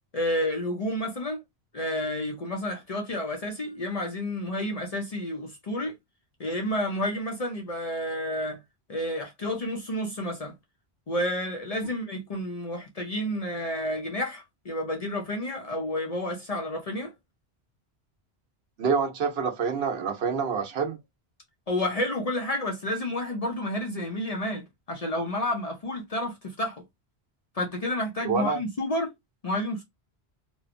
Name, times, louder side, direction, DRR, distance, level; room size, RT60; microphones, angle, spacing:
voice 1, 0.1-1.4 1.7-5.9 6.4-8.6 8.9-10.5 11.1-17.1 21.7-26.8 27.5-29.1 29.4-29.8, left 1 dB, 45° left, 0.6 m, -30 dB
voice 2, 18.8-21.0 28.2-28.6, right 6 dB, 70° right, 0.9 m, -27 dB
3.0 x 2.0 x 2.5 m
omnidirectional pair, 1.1 m